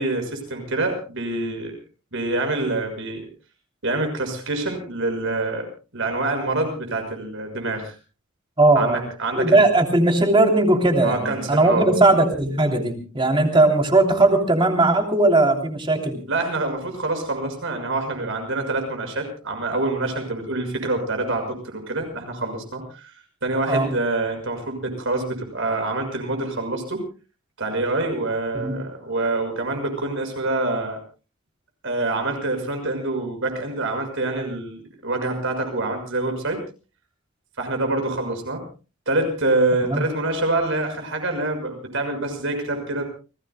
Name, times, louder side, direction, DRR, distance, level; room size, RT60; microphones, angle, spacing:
voice 1, 0.0-1.8 2.1-3.3 3.8-5.7 5.9-8.0 8.7-9.6 11.0-11.9 16.3-23.1 23.4-27.0 27.6-31.0 31.8-36.6 37.6-38.6 39.1-43.0, right 2 dB, 65° right, 5 dB, 6.2 m, -26 dB
voice 2, 8.6-9.0 9.3-16.2 23.7-23.9 28.5-28.8 39.8-40.0, right 2 dB, 25° right, 3 dB, 3.1 m, -18 dB
29.5 x 19.0 x 2.3 m, 0.34 s
head